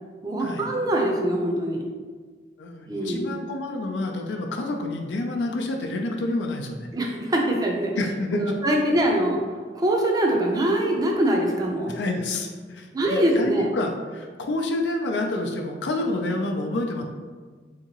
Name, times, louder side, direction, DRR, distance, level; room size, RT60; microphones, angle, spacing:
voice 1, 0.2-1.8 2.9-3.3 6.9-7.9 8.4-9.4 9.7-11.9 12.9-13.7, right 1 dB, 20° right, 0 dB, 0.5 m, -23 dB
voice 2, 2.6-6.9 8.0-8.4 11.9-17.0, left 2 dB, 80° left, 2 dB, 0.4 m, -28 dB
3.5 x 2.8 x 2.9 m, 1.5 s
head